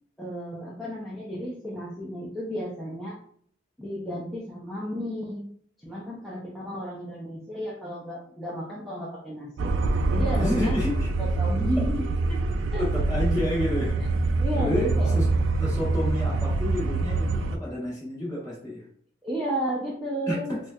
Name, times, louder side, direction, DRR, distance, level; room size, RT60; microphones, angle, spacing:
voice 1, 0.2-3.2 3.8-5.5 5.8-9.7 10.1-10.8 11.2-12.0 12.3-12.4 12.7-12.8 14.0-14.1 14.4-15.4 19.2-20.5, equal, ahead, -7 dB, 0.5 m, -33 dB
sound 1, 9.6-17.6, right 3 dB, 80° right, 0.3 m, -25 dB
voice 2, 10.3-11.1 12.8-14.2 14.5-15.3 15.6-18.8 20.3-20.6, left 1 dB, 20° left, -6 dB, 1.3 m, -30 dB
4.2 x 2.1 x 2.3 m, 0.62 s
head